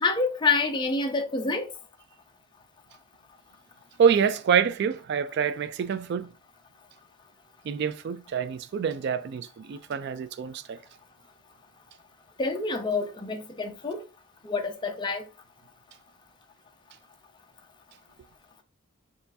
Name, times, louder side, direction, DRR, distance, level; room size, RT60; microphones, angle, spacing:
voice 1, 0.0-1.7 12.4-14.0 14.4-15.2, left 4 dB, 20° left, 0.5 m, -27 dB
voice 2, 4.0-6.3 7.7-10.8, right 7 dB, 55° right, 0.3 m, -26 dB
4.4 x 3.1 x 2.6 m
head